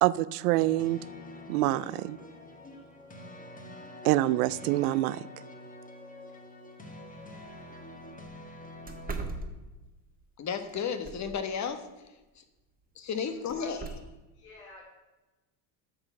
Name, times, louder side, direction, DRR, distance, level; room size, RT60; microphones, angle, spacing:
voice 1, 0.0-1.0 1.5-2.2 4.0-5.2, right 16 dB, 80° right, 18 dB, 0.6 m, -26 dB
sound 1, 0.6-9.1, left 1 dB, 20° left, 1.8 m, -47 dB
sound 2, 7.2-7.4 7.8-7.9 8.3-8.4 8.9-10.1 10.7-11.5 13.5-13.9, right 3 dB, 20° right, 1.7 m, -39 dB
voice 2, 10.4-11.8 12.4-12.5 12.9-13.8, left 6 dB, 40° left, 9 dB, 1.3 m, -33 dB
voice 3, 13.2-14.0 14.3-14.8, left 2 dB, 85° left, -4 dB, 3.6 m, -51 dB
8.8 x 6.2 x 7.0 m, 1.1 s
hypercardioid pair, 85°, 44 cm